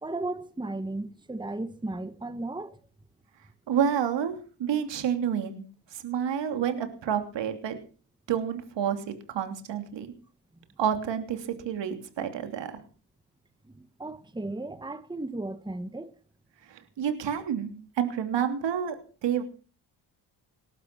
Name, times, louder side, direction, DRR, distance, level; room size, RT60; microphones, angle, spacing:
voice 1, 0.0-2.8 13.6-16.1, right 2 dB, 10° right, 1.5 m, -35 dB
voice 2, 3.7-5.6 5.9-7.8 8.3-10.1 10.8-12.7 16.7-19.0 19.2-19.4, right 8 dB, 75° right, 3.1 m, -29 dB
19.5 x 12.0 x 6.0 m
cardioid pair, 70°, 43 cm